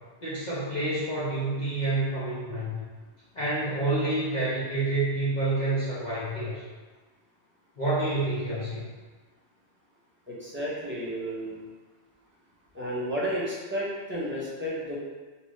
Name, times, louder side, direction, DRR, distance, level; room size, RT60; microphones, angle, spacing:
voice 1, 0.2-2.8 3.3-6.6 7.8-8.8, right 2 dB, 45° left, -10 dB, 0.9 m, -28 dB
voice 2, 10.3-11.6 12.7-15.0, equal, 15° right, -8 dB, 0.6 m, -32 dB
3.2 x 2.5 x 3.1 m, 1.3 s
omnidirectional pair, 1.2 m